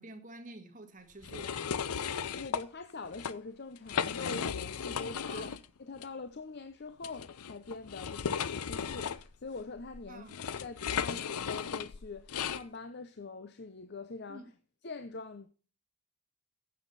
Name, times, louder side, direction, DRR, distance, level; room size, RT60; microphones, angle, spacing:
voice 1, 0.0-1.7 5.3-5.6 10.1-10.4 14.3-14.5, right 2 dB, 35° right, 1.6 m, -49 dB
sound 1, 1.2-2.6 3.0-3.3 3.8-5.6 6.0-6.1 7.0-12.6, left 7 dB, 85° left, 0.6 m, -36 dB
voice 2, 2.3-5.5 5.8-10.3 10.6-14.5 14.8-15.5, left 3 dB, 50° left, 0.7 m, -44 dB
15.0 x 7.4 x 4.1 m
head